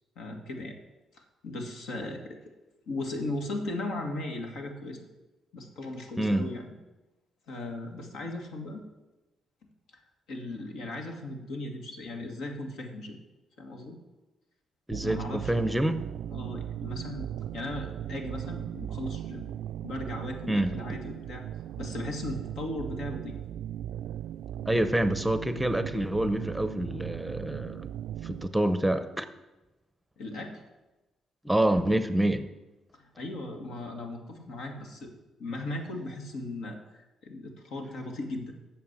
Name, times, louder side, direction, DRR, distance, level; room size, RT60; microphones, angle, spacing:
voice 1, 0.2-0.8 1.4-2.4 2.9-5.1 5.5-6.8 7.5-8.8 9.9-10.0 10.3-13.2 13.6-14.0 15.0-15.5 16.3-17.3 17.5-19.5 19.8-21.4 21.8-23.3 30.2-30.6 32.9-35.1 35.4-38.5, left 2 dB, 80° left, 1.9 m, -37 dB
voice 2, 6.2-6.5 14.9-16.1 20.5-20.8 24.7-27.9 28.2-29.3 31.4-32.5, right 1 dB, 5° right, 0.7 m, -27 dB
sound 1, 14.9-28.5, right 11 dB, 80° right, 0.3 m, -38 dB
8.5 x 6.9 x 8.1 m
cardioid pair, 90°, 0 cm